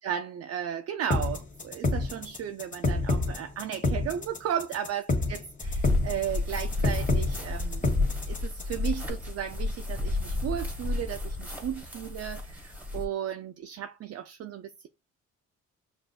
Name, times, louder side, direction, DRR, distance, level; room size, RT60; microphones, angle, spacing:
voice 1, 0.0-5.0 5.3-14.9, right 9 dB, 55° right, 0.4 m, -35 dB
sound 1, 1.1-9.1, left 2 dB, 25° left, 1.5 m, -28 dB
sound 2, 5.6-13.1, left 2 dB, 5° right, 1.3 m, -32 dB
5.7 x 2.5 x 2.3 m
cardioid pair, 90°, 30 cm